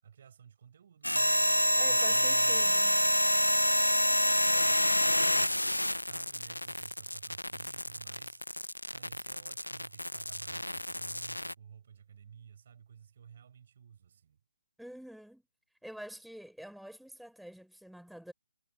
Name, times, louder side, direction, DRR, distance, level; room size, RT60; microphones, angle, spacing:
voice 1, 0.0-1.4 1.8-2.7 4.0-5.6 6.0-8.4 8.9-14.4, right 8 dB, 45° right, 6.7 m, -54 dB
sound 1, 1.0-11.5, left 1 dB, 90° left, 0.7 m, -28 dB
voice 2, 1.8-3.0 14.8-15.4 15.8-18.3, equal, ahead, 3.9 m, -47 dB
figure-of-eight pair, 140°, 0 cm